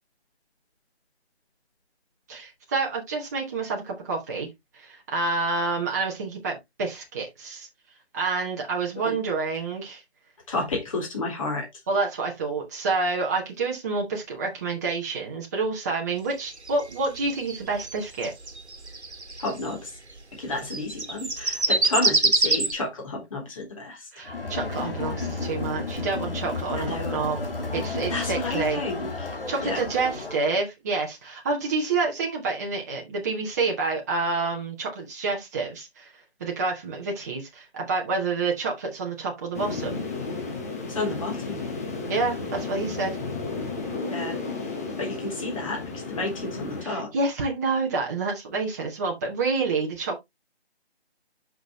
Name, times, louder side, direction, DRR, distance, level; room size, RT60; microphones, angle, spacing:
voice 1, 2.3-4.5 4.7-7.7 8.1-10.0 11.9-18.3 24.1-27.4 27.7-28.8 29.5-36.1 36.4-40.0 42.1-43.2 46.8-50.2, right 3 dB, 15° right, 1.2 m, -28 dB
voice 2, 10.5-11.7 19.4-20.0 20.3-24.1 26.8-27.3 28.1-29.3 29.6-29.8 40.9-41.6 44.1-44.4 45.0-47.1, left 2 dB, 30° left, 3.4 m, -31 dB
sound 1, 16.4-19.7 20.5-22.7, right 2 dB, 85° right, 1.6 m, -24 dB
Crowd, 24.2-30.5, left 3 dB, 55° left, 2.5 m, -32 dB
sound 2, 39.5-46.8, left 3 dB, 15° left, 1.0 m, -33 dB
7.7 x 6.3 x 3.1 m
figure-of-eight pair, 160°, 33 cm